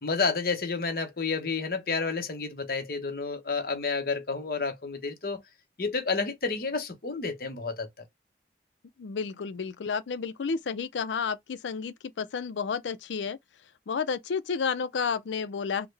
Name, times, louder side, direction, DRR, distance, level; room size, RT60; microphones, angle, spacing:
voice 1, 0.0-5.4 5.8-8.1, left 4 dB, 55° left, 0.9 m, -30 dB
voice 2, 9.0-13.4 13.9-15.9, left 5 dB, 85° left, 0.4 m, -31 dB
3.6 x 2.1 x 3.2 m
head